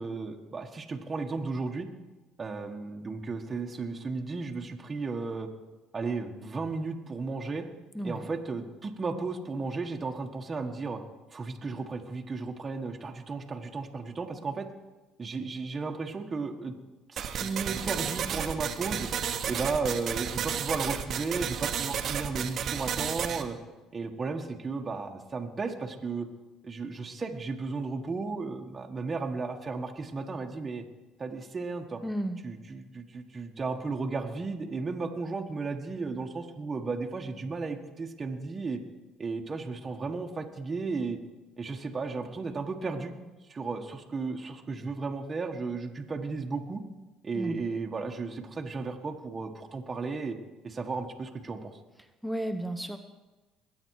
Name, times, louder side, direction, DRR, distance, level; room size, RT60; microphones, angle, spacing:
voice 1, 0.0-1.9 2.4-5.5 5.9-7.6 8.0-11.0 11.3-14.7 15.2-16.7 17.1-19.1 19.5-23.6 23.9-26.3 26.6-30.8 31.2-32.0 32.4-38.8 39.2-41.2 41.6-43.1 43.5-46.8 47.2-50.4 50.6-51.8, right 4 dB, 30° right, 2 dB, 1.5 m, -34 dB
voice 2, 7.9-8.3 32.0-32.4 47.3-47.7 52.2-53.0, right 1 dB, 5° right, 7 dB, 1.0 m, -33 dB
sound 1, 17.2-23.4, right 8 dB, 55° right, 1.2 m, -32 dB
21.5 x 8.8 x 4.8 m, 1.1 s
supercardioid pair, 70°, 0 cm